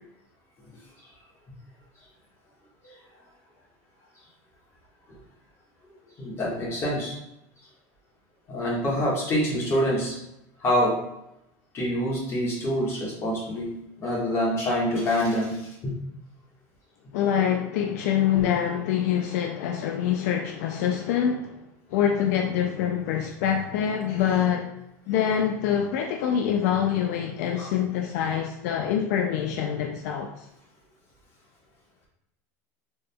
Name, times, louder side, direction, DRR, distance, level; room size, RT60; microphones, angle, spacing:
voice 1, 6.2-7.2 8.5-10.1 10.6-11.0 11.7-13.7 14.0-15.9 18.3-18.4 27.6-27.7, equal, 30° left, -4 dB, 1.5 m, -26 dB
voice 2, 17.1-21.5 21.9-24.7 25.1-30.5, left 9 dB, 70° left, 3 dB, 0.3 m, -25 dB
3.7 x 3.6 x 2.2 m, 0.85 s
supercardioid pair, 130°, 9 cm